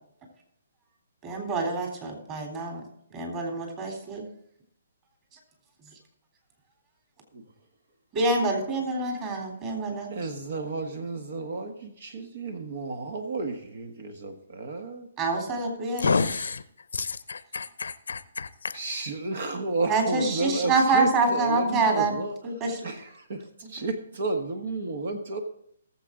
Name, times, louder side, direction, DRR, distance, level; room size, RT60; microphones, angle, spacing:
voice 1, 1.2-2.8 3.1-4.2 8.1-10.1 15.2-16.3 19.9-22.2 22.4-22.8, right 3 dB, 30° right, 3.4 m, -26 dB
voice 2, 9.9-15.1 16.2-16.5 18.7-22.3 22.6-25.4, right 3 dB, 60° right, 1.5 m, -32 dB
voice 3, 16.0-16.6 16.9-18.5, left 5 dB, 80° left, 0.7 m, -28 dB
19.0 x 7.5 x 3.8 m
hypercardioid pair, 145°, 0 cm